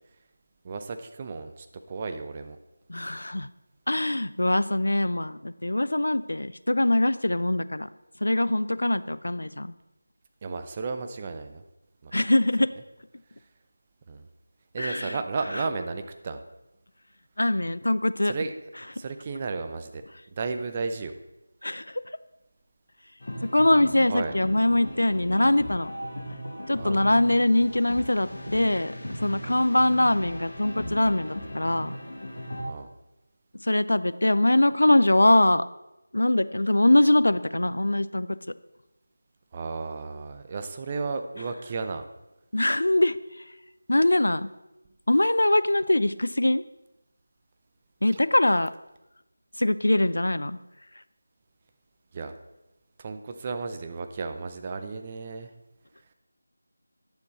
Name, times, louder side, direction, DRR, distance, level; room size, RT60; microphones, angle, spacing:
voice 1, 0.6-2.6 10.4-11.6 12.0-12.1 14.1-14.3 14.7-16.4 18.2-18.5 18.9-20.0 20.3-21.2 24.1-24.3 26.8-27.1 29.4-29.7 32.7-32.9 39.5-42.0 52.1-52.3 53.0-55.5, right 4 dB, 25° right, 8 dB, 0.6 m, -33 dB
voice 2, 2.9-3.5 3.9-7.9 8.2-9.7 12.1-12.7 14.8-15.2 17.4-18.3 21.6-22.0 23.4-25.9 26.7-31.9 33.6-35.6 36.1-38.3 42.5-43.1 43.9-44.5 45.1-46.6 48.0-48.7 49.6-50.6, left 1 dB, 75° left, 15 dB, 0.5 m, -22 dB
sound 1, 23.2-32.6, equal, 60° left, 2.5 m, -38 dB
10.5 x 6.9 x 4.1 m, 0.97 s
figure-of-eight pair, 165°, 0 cm